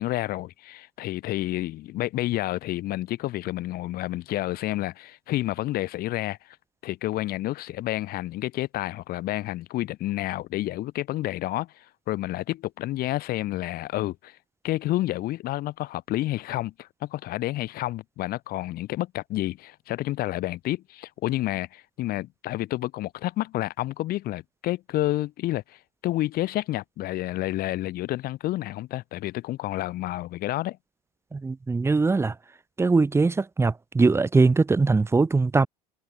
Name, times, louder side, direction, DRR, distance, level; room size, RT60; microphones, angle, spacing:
voice 1, 0.0-6.6 6.8-14.4 14.6-30.8, left 16 dB, 55° left, 4.6 m, -30 dB
voice 2, 31.3-32.3 32.8-35.7, right 3 dB, 15° right, 0.9 m, -21 dB
hypercardioid pair, 75°, 19 cm